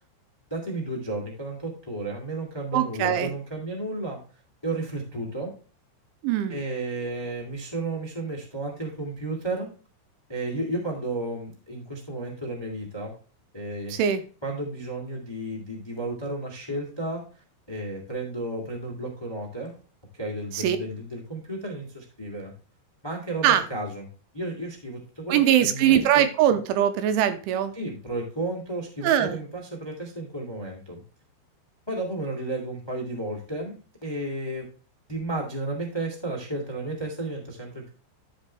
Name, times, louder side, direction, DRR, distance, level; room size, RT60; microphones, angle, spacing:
voice 1, 0.5-4.2 4.6-5.5 6.5-9.7 10.3-13.1 13.5-13.9 14.4-17.2 17.7-19.7 20.1-22.5 23.0-24.0 24.3-26.2 27.7-31.0 31.9-34.7 35.1-37.9, right 2 dB, 20° left, 0 dB, 0.7 m, -33 dB
voice 2, 2.7-3.3 6.2-6.6 13.9-14.2 20.5-20.8 23.4-23.7 25.3-27.7 29.0-29.4, right 10 dB, 85° right, 10 dB, 3.0 m, -22 dB
13.5 x 5.4 x 3.2 m, 0.36 s
omnidirectional pair, 5.8 m